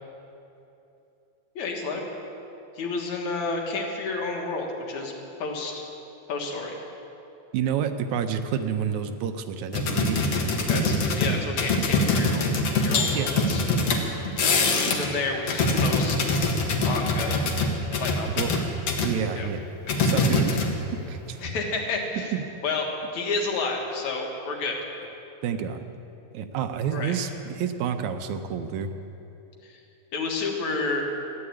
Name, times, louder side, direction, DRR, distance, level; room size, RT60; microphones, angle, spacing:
voice 1, 1.6-2.0 2.8-5.1 5.4-5.8 6.3-6.8 10.7-12.5 12.8-13.6 14.4-16.3 16.8-17.5 18.0-18.4 19.4-19.5 21.4-22.3 22.6-22.9 23.1-24.8 26.9-27.1 29.6-29.8 30.1-31.1, left 3 dB, 75° left, 1 dB, 3.1 m, -30 dB
voice 2, 7.5-10.2 13.1-13.3 18.4-18.6 19.0-19.6 20.0-20.6 21.1-21.4 22.3-22.4 25.4-25.8 26.3-28.9, right 7 dB, 80° right, 8 dB, 2.2 m, -29 dB
sound 1, 9.7-15.1 15.4-19.1 19.9-21.0 21.2-21.4, left 2 dB, 60° left, 2.4 m, -24 dB
14.5 x 10.5 x 8.6 m, 2.9 s
omnidirectional pair, 3.3 m